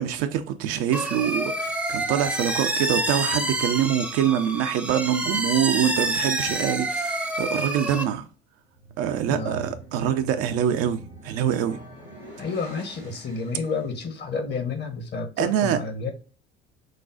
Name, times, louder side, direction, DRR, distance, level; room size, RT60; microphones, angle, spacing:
voice 1, 0.0-8.2 9.0-11.8 15.4-15.8, right 10 dB, 50° right, 0.6 m, -25 dB
sound 1, 0.9-8.0, right 1 dB, 5° right, 0.5 m, -27 dB
sound 2, 8.7-14.1, right 2 dB, 85° right, 1.4 m, -45 dB
voice 2, 9.3-9.7 12.4-16.1, left 4 dB, 35° left, 1.0 m, -30 dB
6.3 x 2.3 x 2.3 m
figure-of-eight pair, 60°, 31 cm